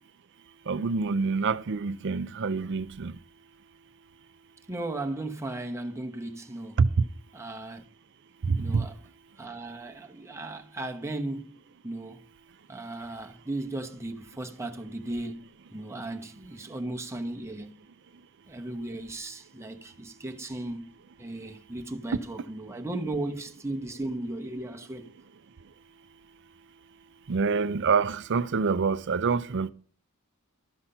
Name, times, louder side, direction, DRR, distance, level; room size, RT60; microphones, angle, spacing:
voice 1, 0.7-3.1 6.8-6.9 8.5-8.8 27.3-29.7, right 5 dB, 55° right, 0.5 m, -26 dB
voice 2, 4.7-6.8 7.3-7.8 8.6-8.9 9.4-11.6 11.8-12.2 12.7-17.8 18.5-20.9 21.2-25.1, right 2 dB, 15° right, 1.0 m, -36 dB
12.5 x 5.9 x 5.6 m
head